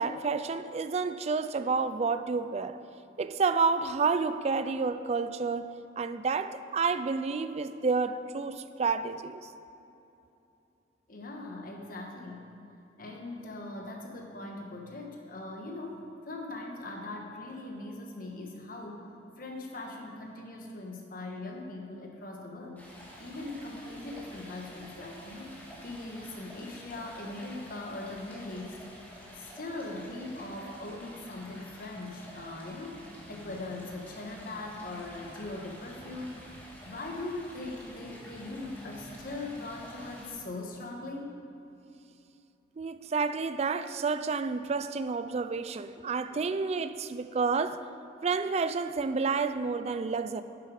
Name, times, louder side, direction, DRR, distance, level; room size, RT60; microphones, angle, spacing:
voice 1, 0.0-2.8 3.2-9.4 42.8-47.8 48.2-50.4, right 4 dB, 35° right, 0.3 m, -30 dB
voice 2, 11.1-12.6 13.0-19.1 19.4-25.6 25.8-28.8 29.1-33.0 33.3-36.5 36.8-41.3, left 2 dB, 50° left, 1.3 m, -40 dB
Stream, 22.8-40.3, equal, 10° left, 1.6 m, -49 dB
10.0 x 7.3 x 4.9 m
head